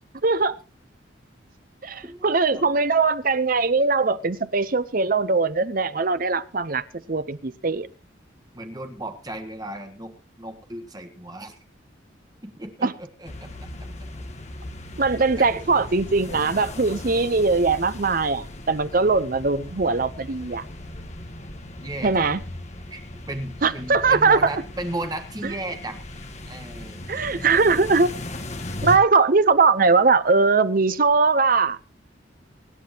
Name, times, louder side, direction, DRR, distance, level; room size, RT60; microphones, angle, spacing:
voice 1, 0.2-0.6 1.8-7.9 12.8-12.9 15.0-20.6 22.0-22.4 23.6-24.4 25.4-25.5 27.1-28.1 28.8-31.8, right 4 dB, 45° right, 0.7 m, -21 dB
voice 2, 2.0-2.7 8.5-10.1 10.4-11.6 12.4-13.7 15.4-15.5 21.8-22.3 22.9-23.0 23.3-26.0 26.5-27.3, right 1 dB, 20° right, 1.5 m, -35 dB
sound 1, 13.2-29.0, left 1 dB, 35° left, 1.3 m, -37 dB
24.5 x 9.9 x 2.9 m
head